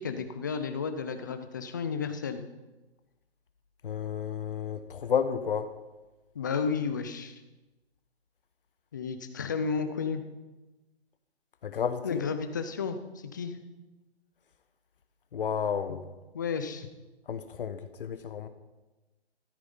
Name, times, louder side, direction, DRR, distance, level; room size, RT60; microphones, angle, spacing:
voice 1, 0.0-2.5 6.3-7.3 8.9-10.2 12.0-13.6 16.3-16.9, left 5 dB, 20° left, 9 dB, 0.5 m, -32 dB
voice 2, 3.8-5.7 11.6-12.2 15.3-16.0 17.3-18.5, left 7 dB, 55° left, 10 dB, 1.0 m, -31 dB
13.5 x 12.0 x 5.5 m, 1.1 s
hypercardioid pair, 165°, 33 cm